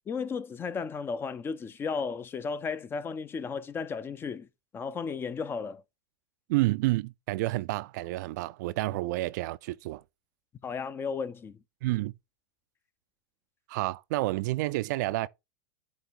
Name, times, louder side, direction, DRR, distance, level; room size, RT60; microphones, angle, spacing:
voice 1, 0.1-4.5 4.7-5.8 10.6-11.6, left 5 dB, 20° left, 0.4 m, -34 dB
voice 2, 6.5-10.0 11.8-12.1 13.7-15.3, right 19 dB, 55° right, 0.4 m, -29 dB
7.9 x 3.0 x 4.4 m
hypercardioid pair, 110°, 11 cm